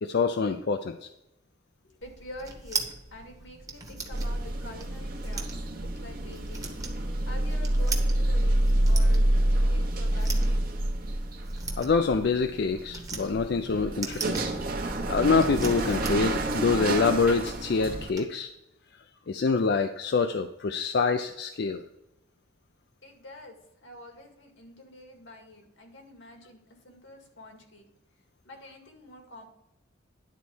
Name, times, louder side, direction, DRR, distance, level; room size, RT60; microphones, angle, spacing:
voice 1, 0.0-1.1 11.8-14.5 15.1-18.5 19.3-21.8, left 4 dB, 60° left, 7 dB, 0.4 m, -26 dB
voice 2, 1.8-5.5 5.8-6.7 7.3-9.3 9.7-10.6 23.0-27.9 28.4-29.5, left 1 dB, 85° left, 3 dB, 2.0 m, -47 dB
sound 1, 2.0-18.2, right 4 dB, 20° right, 1.1 m, -41 dB
sound 2, 4.1-18.1, right 1 dB, 50° right, 1.0 m, -27 dB
10.5 x 4.1 x 6.2 m, 0.89 s
head